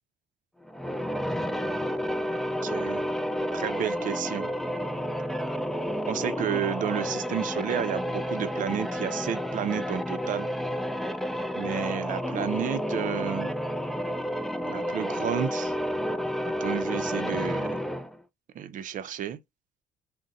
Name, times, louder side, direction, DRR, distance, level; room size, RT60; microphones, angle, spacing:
sound 1, 0.7-18.2, equal, ahead, 0.3 m, -30 dB
voice 1, 2.6-3.1 3.5-4.5 6.1-10.5 11.5-13.5 14.6-15.7 16.6-17.8 18.5-19.4, right 9 dB, 50° right, 0.5 m, -31 dB
3.9 x 2.1 x 3.6 m
cardioid pair, 110°, 17 cm